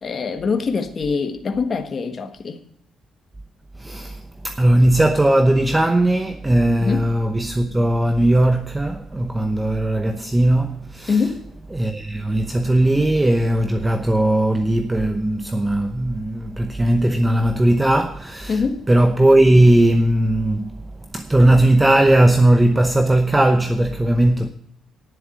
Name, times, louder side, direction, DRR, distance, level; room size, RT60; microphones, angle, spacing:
voice 1, 0.0-2.6 6.8-7.0 11.1-11.4 18.5-18.8, left 5 dB, 45° left, 1.4 m, -23 dB
voice 2, 3.8-11.2 11.7-18.6 18.9-20.8 21.1-24.5, right 1 dB, 15° right, 0.8 m, -18 dB
10.5 x 7.4 x 7.7 m
cardioid pair, 90°, 0 cm